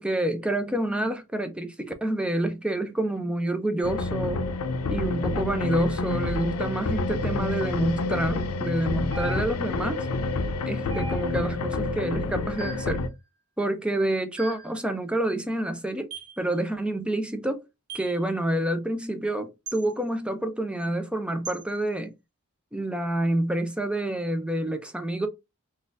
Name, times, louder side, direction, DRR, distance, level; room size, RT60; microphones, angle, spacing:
voice 1, 0.0-4.4 4.9-10.1 10.7-13.0 13.6-16.1 16.4-17.6 17.9-22.1 22.7-25.3, right 1 dB, 5° right, 0.4 m, -28 dB
sound 1, 3.8-13.1, left 3 dB, 90° left, 0.5 m, -28 dB
sound 2, 9.1-9.8 10.9-11.6 12.6-13.0 14.4-14.8 16.1-16.4 17.9-18.2 19.7-19.8 21.4-21.6, right 3 dB, 85° right, 1.1 m, -39 dB
4.0 x 2.5 x 2.5 m
head